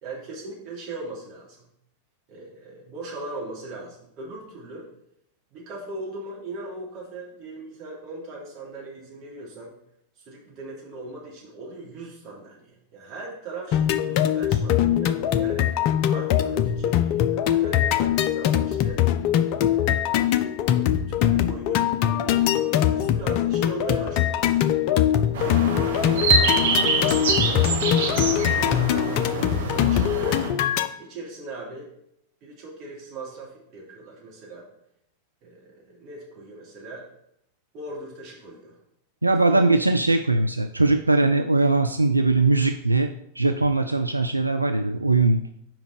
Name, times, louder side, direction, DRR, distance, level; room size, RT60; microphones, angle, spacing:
voice 1, 0.0-1.6 2.3-4.9 5.5-9.7 10.2-15.7 16.1-19.0 19.5-20.2 20.7-24.6 25.4-29.1 29.7-30.4 31.0-31.9 32.4-34.7 35.4-37.0 37.7-38.8 39.4-39.7, right 2 dB, 40° right, -5 dB, 3.0 m, -39 dB
sound 1, 13.7-30.9, left 11 dB, 45° left, 0.5 m, -22 dB
sound 2, 25.3-30.5, right 5 dB, 60° right, 1.2 m, -25 dB
voice 2, 39.2-45.4, right 3 dB, 85° right, 7 dB, 0.3 m, -21 dB
6.0 x 5.0 x 4.9 m, 0.75 s
figure-of-eight pair, 90°, 0 cm